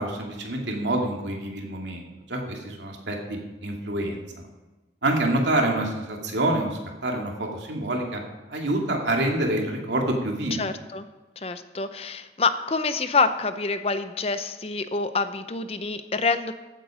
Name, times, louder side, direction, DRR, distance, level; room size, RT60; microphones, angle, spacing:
voice 1, 0.0-4.2 5.0-8.2 8.5-10.6, right 1 dB, 90° right, 1 dB, 2.5 m, -27 dB
voice 2, 10.6-11.1 11.4-16.5, left 4 dB, 35° left, 11 dB, 0.6 m, -26 dB
15.0 x 8.3 x 5.0 m, 1.2 s
head